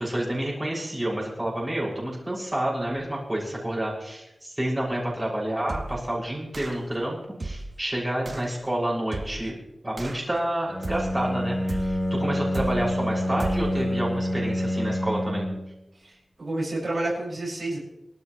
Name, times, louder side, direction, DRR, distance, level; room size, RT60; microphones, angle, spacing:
voice 1, 0.0-9.5 9.8-15.5, right 1 dB, 20° right, -4 dB, 6.4 m, -29 dB
sound 1, 5.7-6.1 6.5-6.9 7.4-7.8 8.3-8.5 9.1-9.5 10.0-10.4 10.8-11.2 11.7-12.1 12.5-13.0 13.4-13.8, right 2 dB, 45° right, 1.0 m, -35 dB
Bowed string instrument, 10.7-15.8, equal, 30° left, 4.1 m, -27 dB
voice 2, 16.0-17.8, right 2 dB, 65° right, -5 dB, 6.2 m, -30 dB
24.5 x 13.5 x 3.2 m, 0.88 s
wide cardioid pair, 75°, 0 cm